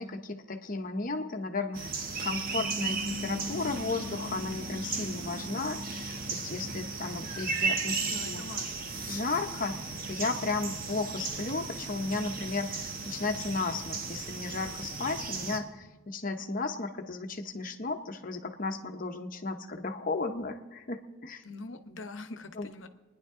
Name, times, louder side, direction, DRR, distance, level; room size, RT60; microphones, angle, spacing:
voice 1, 0.0-1.9 2.2-8.4 9.1-21.4 22.6-22.7, left 3 dB, 45° left, 5 dB, 1.0 m, -34 dB
sound 1, 1.7-15.6, right 3 dB, 50° right, 1.3 m, -35 dB
voice 2, 8.0-8.9 21.4-22.9, left 3 dB, 75° left, 8 dB, 1.0 m, -43 dB
29.0 x 10.5 x 3.7 m, 1.2 s
head